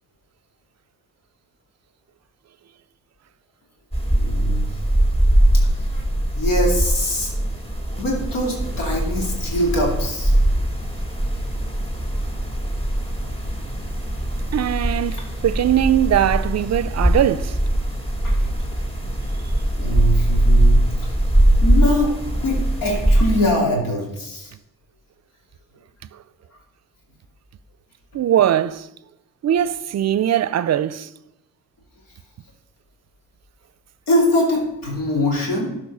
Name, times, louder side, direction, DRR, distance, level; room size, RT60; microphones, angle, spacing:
sound 1, 3.9-23.5, right 1 dB, 15° left, 2.2 m, -21 dB
voice 1, 4.1-4.7 6.4-7.3 8.0-10.3 18.2-18.3 19.8-21.1 21.6-22.2 22.4-24.5 34.1-35.7, equal, 85° left, 2.7 m, -22 dB
voice 2, 14.5-17.6 28.1-28.9 29.4-31.1, right 11 dB, 55° right, 0.5 m, -20 dB
12.5 x 4.9 x 5.4 m
supercardioid pair, 50°, 33 cm